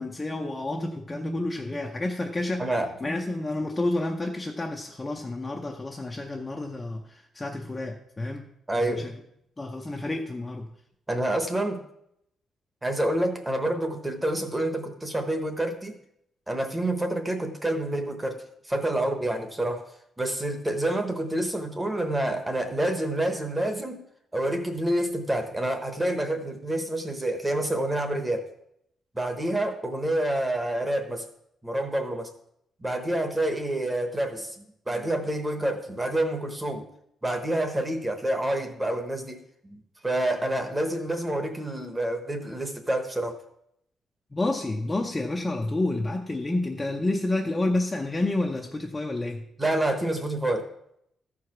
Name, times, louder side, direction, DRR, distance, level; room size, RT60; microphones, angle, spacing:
voice 1, 0.0-2.6 3.0-8.5 8.8-9.1 9.6-10.7 44.3-49.4, left 2 dB, 15° left, 1 dB, 0.6 m, -29 dB
voice 2, 2.6-2.9 8.7-9.1 11.1-11.8 12.8-16.0 16.5-19.8 20.2-24.0 24.3-28.5 29.1-31.3 31.6-32.3 32.8-36.8 37.2-43.4 49.6-50.7, right 1 dB, 10° right, 7 dB, 1.0 m, -28 dB
14.0 x 4.8 x 5.8 m, 0.75 s
cardioid pair, 175°, 0 cm